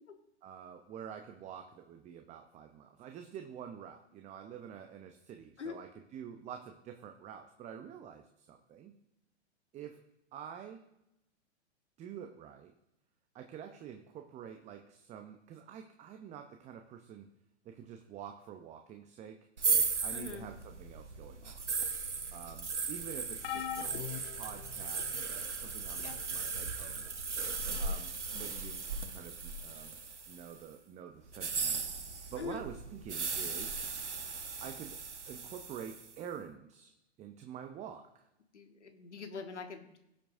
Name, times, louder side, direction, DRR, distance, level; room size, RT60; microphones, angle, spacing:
voice 1, 0.4-8.9 9.7-10.0 10.3-10.8 12.0-12.7 13.3-17.3 17.6-19.5 20.0-21.6 22.3-27.1 27.8-30.0 30.3-31.8 32.3-33.8 34.6-36.9 37.2-38.3, right 8 dB, 20° right, 5 dB, 0.7 m, -48 dB
sound 1, 19.6-30.5 31.3-36.1, right 5 dB, 85° right, 1.0 m, -37 dB
voice 2, 20.1-20.5 26.0-26.2 32.4-32.6 38.5-40.0, left 5 dB, 80° left, 6 dB, 1.4 m, -43 dB
sound 2, 23.4-25.2 26.0-26.2 27.5-27.6, left 10 dB, 55° left, 0.7 m, -41 dB
20.0 x 7.7 x 2.7 m, 0.86 s
figure-of-eight pair, 105°, 35 cm